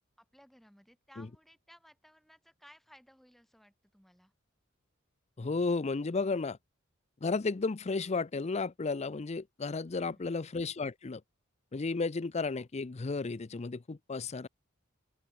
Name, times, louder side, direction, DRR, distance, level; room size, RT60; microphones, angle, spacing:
voice 1, 0.2-4.3 9.9-10.3, equal, ahead, 3.7 m, -60 dB
voice 2, 5.4-6.6 7.2-11.2 11.7-14.5, left 4 dB, 30° left, 0.5 m, -33 dB
open air
head